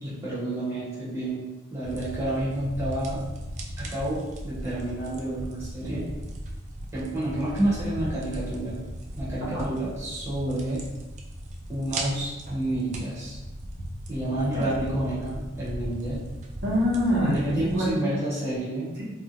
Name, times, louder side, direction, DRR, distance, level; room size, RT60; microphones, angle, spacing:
voice 1, 0.0-1.4 1.7-3.2 3.8-6.1 6.9-8.8 9.2-10.8 11.7-13.4 14.1-16.2 17.3-18.9, right 1 dB, 15° right, -9 dB, 0.7 m, -29 dB
sound 1, 1.8-17.9, right 1 dB, 35° right, 0.3 m, -37 dB
voice 2, 16.6-18.0, equal, 55° right, -6 dB, 0.8 m, -25 dB
2.3 x 2.1 x 2.8 m, 1.1 s
head